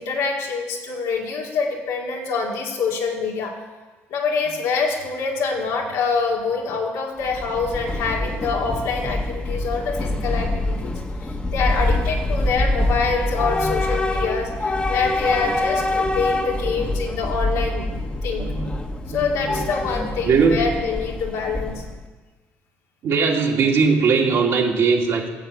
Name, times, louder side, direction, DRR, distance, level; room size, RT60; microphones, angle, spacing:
voice 1, 0.0-3.6 4.1-11.0 11.5-17.9 18.2-18.5 19.1-21.8, left 4 dB, 85° left, -1 dB, 2.3 m, -25 dB
Train / Subway metro underground, 7.2-22.1, left 2 dB, 20° left, 1.2 m, -25 dB
voice 2, 13.4-13.7 17.9-19.7 20.0-20.6 23.0-25.3, right 5 dB, 65° right, -1 dB, 2.3 m, -21 dB
9.7 x 7.1 x 8.2 m, 1.3 s
cardioid pair, 105°, 5 cm